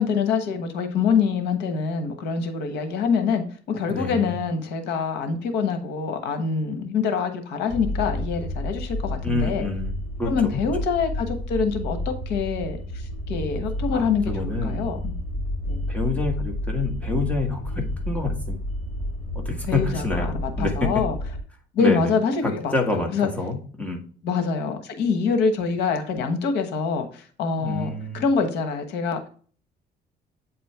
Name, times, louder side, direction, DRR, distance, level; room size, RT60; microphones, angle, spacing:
voice 1, 0.0-9.7 10.2-15.1 15.7-15.9 19.7-21.1 21.7-23.3 24.2-29.3, left 5 dB, 85° left, 7 dB, 1.2 m, -25 dB
voice 2, 3.9-4.4 9.2-10.6 13.9-14.9 15.9-18.6 19.3-20.9 21.8-22.1 22.4-24.0 27.6-28.2, left 3 dB, 10° left, 2 dB, 1.8 m, -28 dB
sound 1, 7.7-21.4, left 1 dB, 45° left, 3.3 m, -30 dB
8.5 x 4.3 x 3.3 m, 0.43 s
cardioid pair, 110°, 17 cm